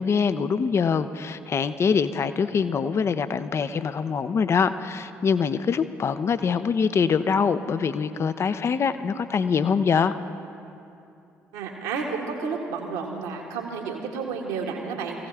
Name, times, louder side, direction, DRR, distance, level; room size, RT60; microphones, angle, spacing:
voice 1, 0.0-10.1, left 6 dB, 40° left, 13 dB, 0.6 m, -24 dB
voice 2, 11.5-15.3, right 5 dB, 70° right, 1 dB, 1.6 m, -31 dB
21.0 x 16.0 x 3.4 m, 2.7 s
figure-of-eight pair, 45°, 7 cm